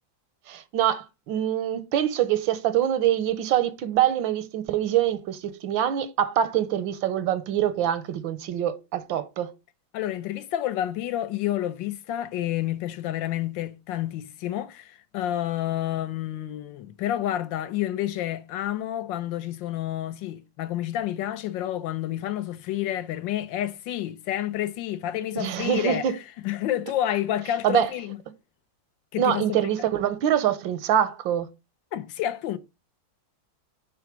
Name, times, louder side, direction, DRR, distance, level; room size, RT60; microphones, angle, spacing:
voice 1, 0.5-9.5 25.4-26.1 27.6-27.9 29.2-31.5, right 10 dB, 90° right, 1.6 m, -24 dB
voice 2, 9.9-28.2 29.1-29.6 31.9-32.6, left 12 dB, 80° left, 1.5 m, -29 dB
9.6 x 3.7 x 6.0 m
omnidirectional pair, 2.0 m